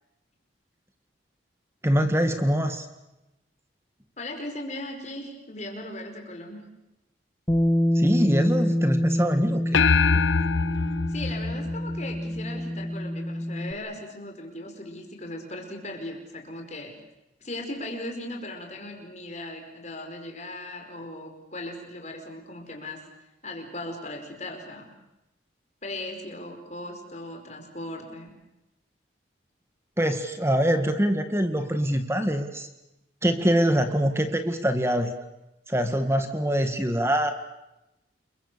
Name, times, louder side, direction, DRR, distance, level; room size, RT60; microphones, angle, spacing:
voice 1, 1.8-2.9 8.0-9.8 30.0-32.7 33.2-35.1 35.7-37.3, equal, 15° right, 8 dB, 1.8 m, -24 dB
voice 2, 4.2-6.7 11.1-16.9 17.4-23.0 23.4-24.9 25.8-28.4, left 1 dB, 35° left, 3 dB, 4.9 m, -38 dB
Bass guitar, 7.5-13.7, equal, 15° left, 1.5 m, -26 dB
sound 1, 9.7-12.4, left 5 dB, 85° left, 0.8 m, -24 dB
29.0 x 23.0 x 6.9 m, 0.93 s
head